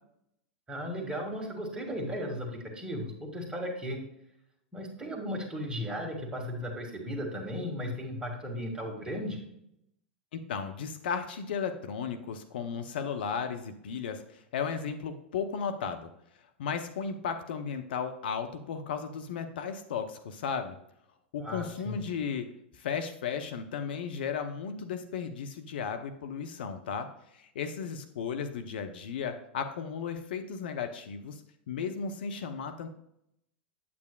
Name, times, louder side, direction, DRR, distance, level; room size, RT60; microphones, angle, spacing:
voice 1, 0.7-4.0 4.7-9.4 21.4-22.2, equal, 15° right, 2 dB, 1.9 m, -36 dB
voice 2, 10.3-14.2 14.5-16.1 16.6-20.8 21.3-22.5 22.8-31.4 31.7-32.9, left 6 dB, 65° left, 7 dB, 0.7 m, -35 dB
8.6 x 8.2 x 2.3 m, 0.77 s
figure-of-eight pair, 90°, 6 cm